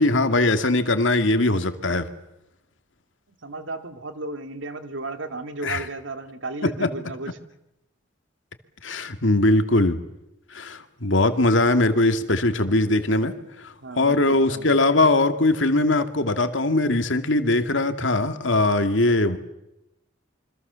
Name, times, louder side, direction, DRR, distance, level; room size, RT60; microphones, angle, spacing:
voice 1, 0.0-2.1 5.6-5.8 6.6-6.9 8.8-10.0 10.5-13.3 13.6-19.4, left 2 dB, 80° left, 8 dB, 2.3 m, -21 dB
voice 2, 3.4-7.4 13.8-14.8, right 2 dB, 80° right, 8 dB, 2.4 m, -34 dB
27.5 x 25.0 x 7.0 m, 0.88 s
head